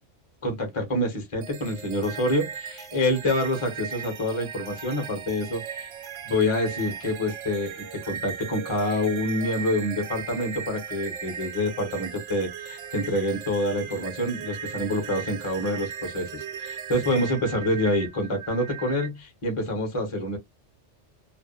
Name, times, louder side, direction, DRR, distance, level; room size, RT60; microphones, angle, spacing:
voice 1, 0.4-5.9 6.2-20.4, left 1 dB, 30° left, 0.7 m, -27 dB
sound 1, 1.4-19.1, right 8 dB, 85° right, 1.0 m, -37 dB
2.5 x 2.2 x 2.3 m
omnidirectional pair, 1.2 m